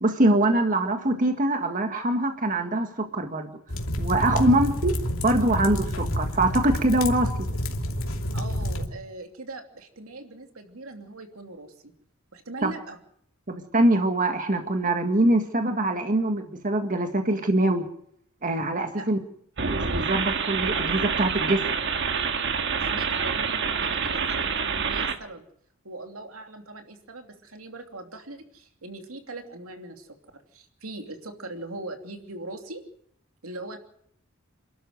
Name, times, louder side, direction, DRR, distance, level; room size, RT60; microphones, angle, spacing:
voice 1, 0.0-3.5 4.0-7.3 12.6-12.7 13.5-17.9 18.4-19.2 19.7-21.6, right 1 dB, 40° right, 5 dB, 1.8 m, -23 dB
sound 1, 3.7-8.9, equal, 70° left, 2.8 m, -28 dB
voice 2, 8.3-11.9 12.3-13.0 18.9-19.2 22.8-25.4 25.8-30.1 30.5-32.8 33.4-33.8, right 2 dB, 80° right, 5 dB, 3.0 m, -40 dB
sound 2, 19.6-25.2, right 5 dB, 55° right, 1.7 m, -27 dB
28.0 x 12.5 x 7.9 m, 0.68 s
head